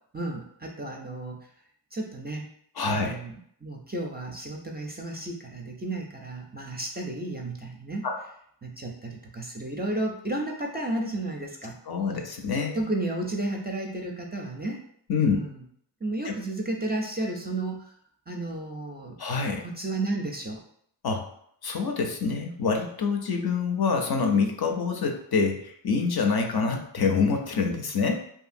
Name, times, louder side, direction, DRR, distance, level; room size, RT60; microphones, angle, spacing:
voice 1, 0.1-1.4 1.9-2.5 2.9-8.1 8.6-11.8 12.7-14.8 15.2-15.6 16.0-17.9 18.3-19.2 19.6-20.6, right 2 dB, 25° right, 0 dB, 0.4 m, -32 dB
voice 2, 2.8-3.2 8.0-8.2 11.9-12.8 15.1-15.4 16.2-16.3 19.2-19.6 21.0-21.3 21.6-28.2, left 5 dB, 55° left, 3 dB, 0.5 m, -26 dB
2.7 x 2.5 x 2.5 m, 0.67 s
wide cardioid pair, 50°, 46 cm